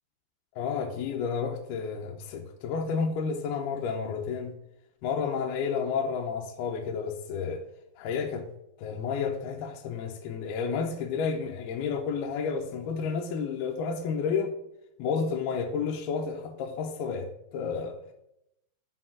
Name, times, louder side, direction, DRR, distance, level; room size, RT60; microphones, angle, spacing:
voice 1, 0.6-4.5 5.0-7.6 8.0-8.5 8.8-14.5 15.0-18.0, left 5 dB, 75° left, 2.5 m, -31 dB
7.8 x 5.2 x 6.0 m
omnidirectional pair, 5.0 m